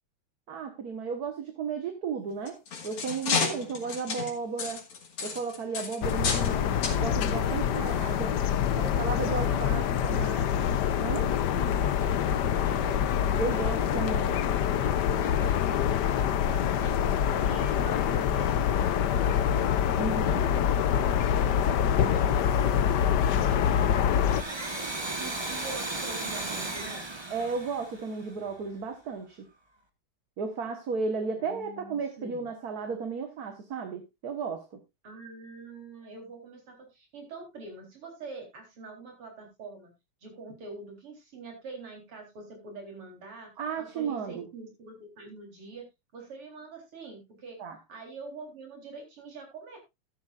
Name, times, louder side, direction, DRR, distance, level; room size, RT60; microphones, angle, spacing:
voice 1, 0.5-4.8 5.2-8.3 8.8-10.5 11.0-11.3 13.4-14.3 20.0-20.4 27.3-29.4 30.4-34.7 43.6-44.5 47.6-47.8, right 5 dB, 50° right, 6 dB, 1.7 m, -34 dB
sound 1, 2.3-6.5 6.8-7.0 7.7-7.9 8.4-8.5, left 5 dB, 85° left, 3.1 m, -32 dB
sound 2, 6.0-24.4, left 9 dB, 65° left, 1.2 m, -26 dB
voice 2, 8.1-10.5 12.0-15.8 16.1-19.5 19.9-24.9 25.2-27.1 31.4-32.5 35.0-39.9 40.2-43.5 43.8-45.9 46.1-47.6 47.9-49.8, right 3 dB, 75° right, 2 dB, 4.8 m, -45 dB
Domestic sounds home sounds, 24.1-28.6, right 2 dB, 20° right, 0.8 m, -35 dB
13.5 x 11.5 x 2.5 m, 0.22 s
omnidirectional pair, 2.4 m